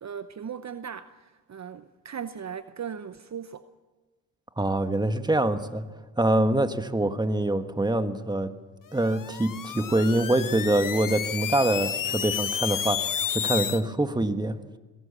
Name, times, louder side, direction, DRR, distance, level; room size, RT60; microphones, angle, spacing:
voice 1, 0.0-3.6, right 7 dB, 40° right, 0.9 m, -38 dB
voice 2, 4.6-5.9 6.2-8.5 8.9-13.0 13.3-14.8, right 1 dB, 10° right, 1.5 m, -25 dB
sound 1, 9.0-13.8, left 9 dB, 50° left, 1.2 m, -31 dB
21.5 x 17.0 x 7.3 m
supercardioid pair, 55°, 41 cm